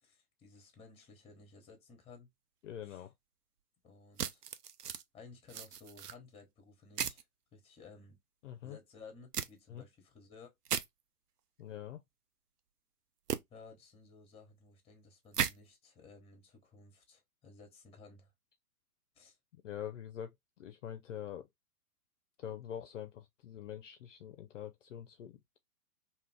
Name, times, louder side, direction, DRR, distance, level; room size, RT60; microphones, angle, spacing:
voice 1, 0.0-2.3 2.8-3.0 3.8-4.4 5.1-7.3 7.5-8.2 8.6-10.5 13.5-18.3 19.1-19.4, left 4 dB, 10° left, 1.0 m, -56 dB
voice 2, 2.6-3.1 8.4-8.8 9.7-9.8 11.6-12.0 19.5-20.3 20.6-21.5 22.4-25.6, left 10 dB, 55° left, 0.5 m, -44 dB
sound 1, 4.2-5.0 5.5-6.1 7.0-7.2 9.3-9.5 10.7-10.9 13.3-13.4 15.3-15.5, right 9 dB, 80° right, 0.6 m, -35 dB
2.7 x 2.4 x 3.4 m
figure-of-eight pair, 115°, 46 cm